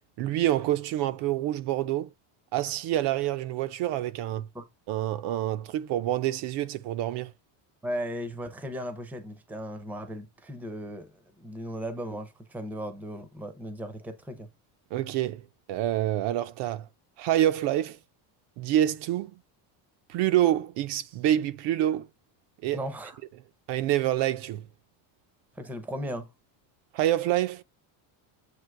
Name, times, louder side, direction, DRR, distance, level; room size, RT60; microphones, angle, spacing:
voice 1, 0.2-2.1 2.5-4.5 4.9-7.3 14.9-16.9 17.2-18.0 18.6-19.3 20.1-22.1 22.6-22.8 23.7-24.6 26.9-27.6, right 13 dB, 55° right, 0.6 m, -27 dB
voice 2, 7.8-11.1 11.4-14.5 22.7-23.2 25.6-26.3, equal, 5° right, 0.6 m, -36 dB
7.8 x 2.9 x 4.6 m
cardioid pair, 160°, 50 cm